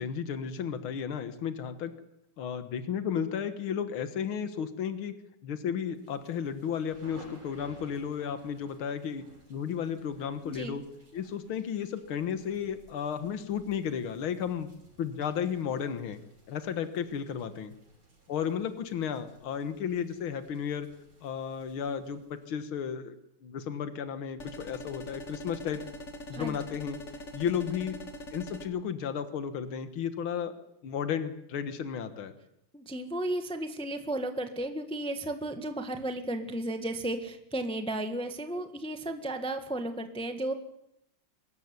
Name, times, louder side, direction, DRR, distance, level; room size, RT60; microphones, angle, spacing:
voice 1, 0.0-1.9 2.4-5.1 5.4-9.2 9.5-10.8 11.1-14.7 15.0-16.2 16.5-17.7 18.3-20.9 21.2-23.2 23.4-25.8 26.3-27.0 27.3-28.0 28.3-30.5 30.8-32.3, left 7 dB, 75° left, 10 dB, 2.3 m, -33 dB
sound 1, 5.9-22.8, right 2 dB, 70° right, 6.9 m, -58 dB
voice 2, 10.4-10.8 26.3-26.6 32.7-40.5, right 1 dB, 5° left, 6 dB, 1.3 m, -34 dB
sound 2, 24.4-28.7, equal, 35° left, 2.2 m, -43 dB
24.5 x 13.5 x 9.7 m, 0.78 s
omnidirectional pair, 2.3 m